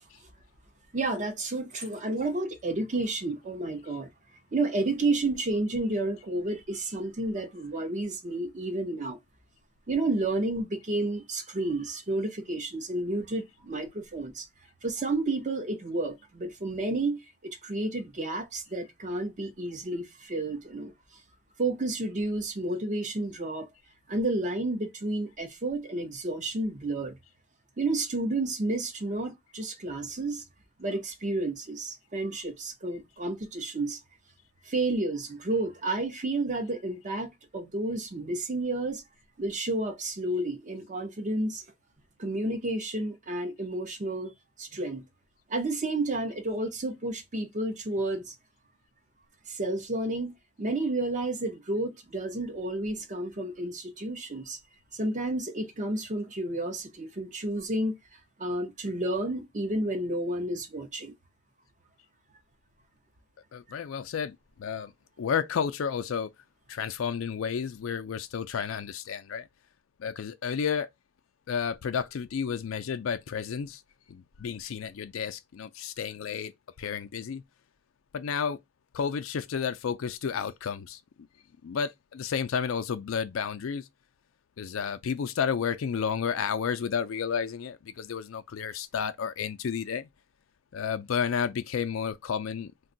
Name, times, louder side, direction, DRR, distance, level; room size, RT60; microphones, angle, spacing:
voice 1, 0.9-4.1 4.5-9.2 9.9-14.5 14.8-20.9 21.6-23.7 24.1-27.2 27.8-30.4 30.8-34.0 34.6-39.0 39.4-41.6 42.2-44.3 44.6-45.0 45.5-48.3 49.5-54.6 54.9-58.0 58.4-61.1 64.8-64.9, right 2 dB, 35° right, 0.6 m, -31 dB
voice 2, 63.5-64.9 65.2-66.3 66.7-69.5 70.0-70.9 71.5-73.8 74.1-76.5 76.8-77.4 78.1-78.6 78.9-81.0 81.6-83.9 84.6-90.1 90.7-92.7, left 7 dB, 75° left, 0.4 m, -31 dB
2.5 x 2.2 x 3.8 m
head